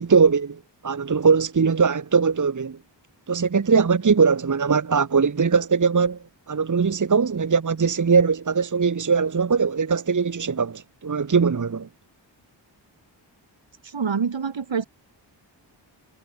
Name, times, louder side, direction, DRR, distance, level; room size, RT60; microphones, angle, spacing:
voice 1, 0.0-2.8 3.3-6.2 6.5-11.9, right 5 dB, 40° right, 1.2 m, -21 dB
voice 2, 13.8-14.8, right 6 dB, 80° right, 4.1 m, -26 dB
wide cardioid pair, 80°, 45 cm